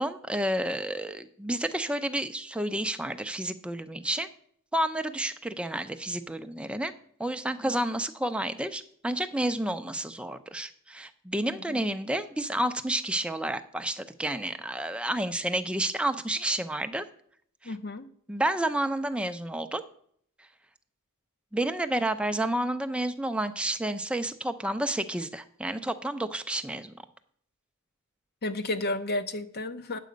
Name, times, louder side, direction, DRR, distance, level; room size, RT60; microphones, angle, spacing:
voice 1, 0.0-4.3 4.7-6.9 7.2-17.0 17.6-17.7 18.3-19.8 21.5-26.9, right 1 dB, 5° right, 8 dB, 0.5 m, -30 dB
voice 2, 11.5-11.8 17.6-18.1 28.4-30.0, left 2 dB, 45° left, 10 dB, 0.8 m, -32 dB
9.2 x 7.6 x 5.1 m, 0.63 s
head